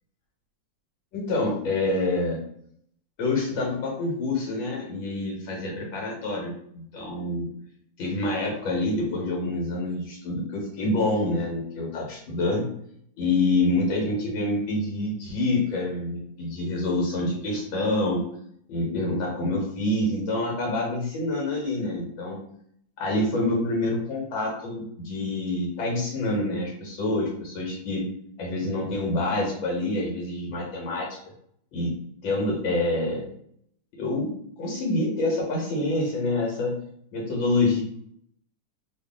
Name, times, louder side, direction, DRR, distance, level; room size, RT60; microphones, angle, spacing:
voice 1, 1.1-2.4 3.2-7.5 8.0-12.7 13.2-18.3 18.7-22.4 23.0-28.0 28.4-31.1 31.7-31.9 32.2-33.3 33.9-36.8 37.1-37.8, left 2 dB, 90° left, -2 dB, 1.9 m, -27 dB
3.5 x 2.5 x 3.7 m, 0.68 s
omnidirectional pair, 2.1 m